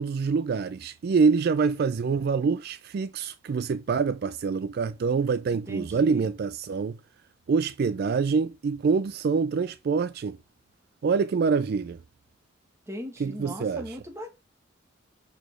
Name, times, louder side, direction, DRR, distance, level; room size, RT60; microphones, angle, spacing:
voice 1, 0.0-7.0 7.5-10.4 11.0-12.0 13.2-13.9, right 5 dB, 55° right, 0.3 m, -25 dB
voice 2, 5.7-6.3 12.9-14.3, equal, 15° right, 1.7 m, -38 dB
6.2 x 5.0 x 6.0 m
head